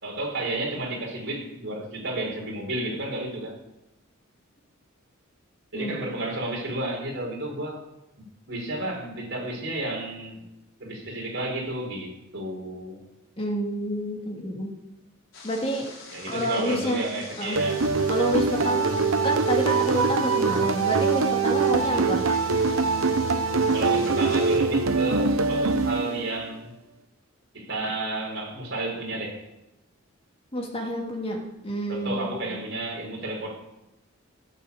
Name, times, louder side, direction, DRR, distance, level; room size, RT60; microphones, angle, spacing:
voice 1, 0.0-3.5 5.7-7.8 8.2-10.5 10.8-13.0 16.1-17.8 21.8-22.0 23.7-26.7 27.5-29.4 31.9-33.6, right 2 dB, 60° right, -1 dB, 4.2 m, -32 dB
voice 2, 13.4-14.7 15.4-15.8 16.3-17.0 17.4-17.6 18.1-22.2 30.5-31.4 31.6-32.6, equal, 30° left, 0 dB, 2.6 m, -28 dB
sound 1, 15.3-24.6, left 3 dB, 70° left, 4.0 m, -44 dB
sound 2, 17.6-26.5, right 4 dB, 85° right, 0.9 m, -23 dB
15.0 x 7.6 x 7.0 m, 0.95 s
head